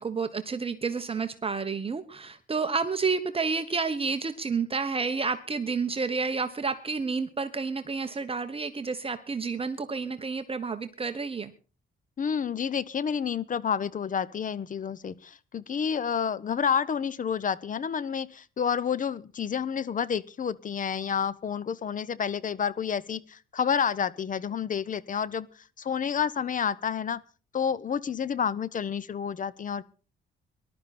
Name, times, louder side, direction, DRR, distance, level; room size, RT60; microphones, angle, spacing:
voice 1, 0.0-11.5, right 4 dB, 30° right, 9 dB, 1.1 m, -30 dB
voice 2, 12.2-25.5 25.8-27.2 27.5-29.8, left 7 dB, 40° left, 21 dB, 0.8 m, -29 dB
19.5 x 12.0 x 4.2 m, 0.36 s
cardioid pair, 90°, 20 cm